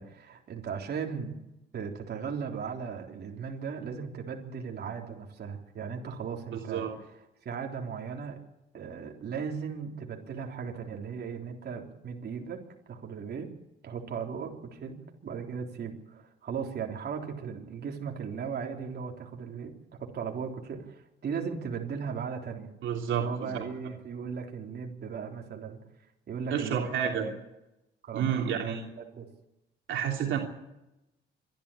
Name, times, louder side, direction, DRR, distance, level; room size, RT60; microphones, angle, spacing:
voice 1, 0.0-1.4 1.7-6.8 7.5-8.4 8.7-12.6 12.9-13.5 13.8-19.7 20.0-22.7 23.1-25.8 26.3-27.3 28.0-29.3, right 6 dB, 55° right, 1 dB, 3.7 m, -37 dB
voice 2, 6.5-6.9 22.8-23.6 26.5-27.3 28.1-28.9 29.9-30.4, right 8 dB, 75° right, 1 dB, 3.1 m, -30 dB
25.5 x 12.0 x 8.6 m, 0.92 s
cardioid pair, 90°, 20 cm